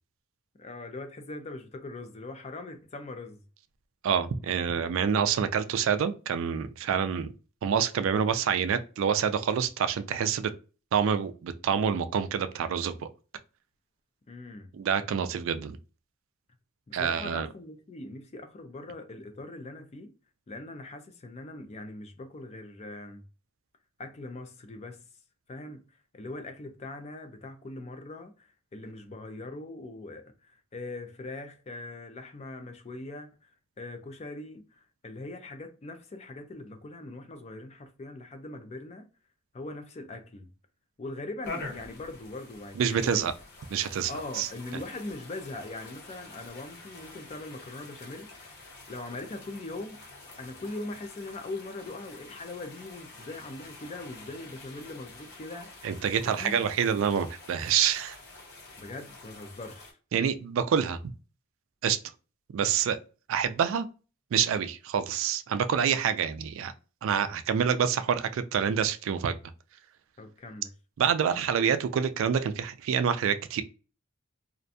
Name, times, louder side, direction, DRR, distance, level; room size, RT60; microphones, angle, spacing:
voice 1, 0.6-3.4 14.3-14.7 16.9-20.1 20.5-23.2 24.0-25.0 25.5-25.8 26.1-39.1 39.5-40.5 41.0-43.3 44.1-48.3 48.9-50.0 50.4-55.7 56.2-56.5 58.8-60.0 70.2-70.7, left 2 dB, 30° left, 0.4 m, -41 dB
voice 2, 4.0-7.3 7.6-10.5 10.9-12.9 14.7-15.8 16.9-17.5 42.8-43.3 43.7-44.5 55.8-58.2 60.1-61.0 61.8-62.0 62.5-63.0 63.3-63.9 64.3-66.7 67.0-69.4 71.0-73.6, right 7 dB, 65° right, 0.3 m, -27 dB
sound 1, 41.4-59.9, left 3 dB, 50° left, 0.8 m, -47 dB
2.5 x 2.2 x 2.6 m
head